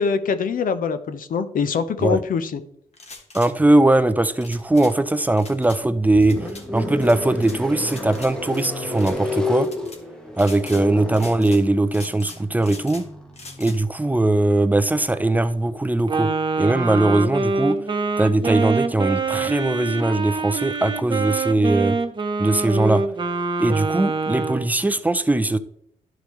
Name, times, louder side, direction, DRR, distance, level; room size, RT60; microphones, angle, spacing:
voice 1, 0.0-2.6, left 5 dB, 65° left, 0.7 m, -23 dB
sound 1, 2.9-3.5 4.4-4.9 5.4-5.8 6.2-6.6 7.0-7.6 7.9-8.7 9.0-9.2 9.6-10.0 10.3-10.9 11.1-11.6 11.9-13.0 13.3-13.8, left 3 dB, 45° left, 1.5 m, -41 dB
voice 2, 3.3-9.7 10.4-13.1 13.6-16.3 16.6-17.8 18.2-22.0 22.4-23.0 23.6-25.6, right 2 dB, 10° right, 0.5 m, -20 dB
sound 2, 5.5-15.6, left 2 dB, 5° left, 1.0 m, -32 dB
Wind instrument woodwind instrument, 16.1-24.7, right 3 dB, 30° right, 0.8 m, -25 dB
11.5 x 5.0 x 3.1 m
cardioid pair, 90°, 15 cm